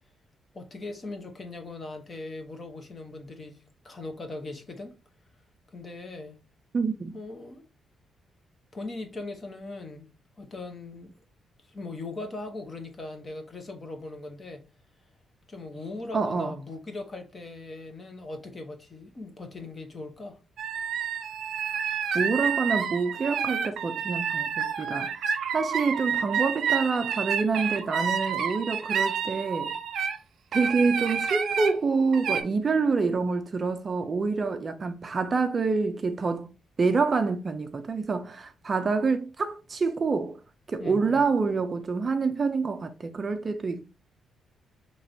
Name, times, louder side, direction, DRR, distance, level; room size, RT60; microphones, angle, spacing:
voice 1, 0.5-5.0 5.7-6.4 7.1-7.7 8.7-10.1 10.4-11.2 11.6-14.6 15.5-20.4 40.8-41.2, left 2 dB, 25° left, 0.8 m, -39 dB
voice 2, 6.7-7.2 16.1-16.6 22.1-25.3 25.5-29.7 30.5-36.5 36.8-40.4 40.7-43.9, right 4 dB, 30° right, 0.4 m, -27 dB
sound 1, 20.6-30.2 30.5-31.7 32.1-32.4, right 7 dB, 70° right, 0.6 m, -29 dB
5.8 x 3.0 x 2.6 m
cardioid pair, 165°, 0 cm